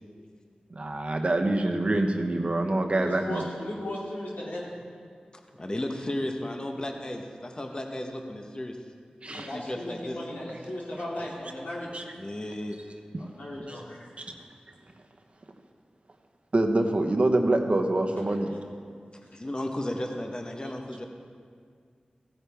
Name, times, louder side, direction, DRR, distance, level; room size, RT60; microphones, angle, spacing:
voice 1, 0.7-3.4 9.2-9.5 11.9-12.0 13.7-13.8 14.2-14.3 16.5-18.5, right 2 dB, 45° right, 3 dB, 1.0 m, -25 dB
voice 2, 3.0-4.7 9.2-12.0 13.2-14.1, left 1 dB, 85° left, -5 dB, 2.5 m, -36 dB
voice 3, 5.6-8.8 9.3-10.2 12.1-12.8 19.3-21.1, left 1 dB, 30° left, 3 dB, 1.0 m, -34 dB
15.5 x 9.3 x 3.5 m, 2.1 s
wide cardioid pair, 70°, 3 cm